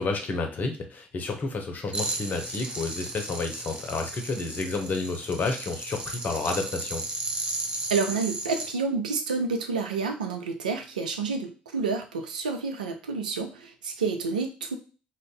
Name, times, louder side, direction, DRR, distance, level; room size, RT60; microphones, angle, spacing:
voice 1, 0.0-7.0, left 3 dB, 45° left, 3 dB, 0.8 m, -30 dB
sound 1, 1.9-8.7, right 2 dB, 25° right, 0.6 m, -35 dB
voice 2, 7.9-14.7, right 4 dB, 85° right, 5 dB, 0.4 m, -29 dB
2.5 x 2.2 x 3.7 m, 0.35 s
figure-of-eight pair, 50°, 4 cm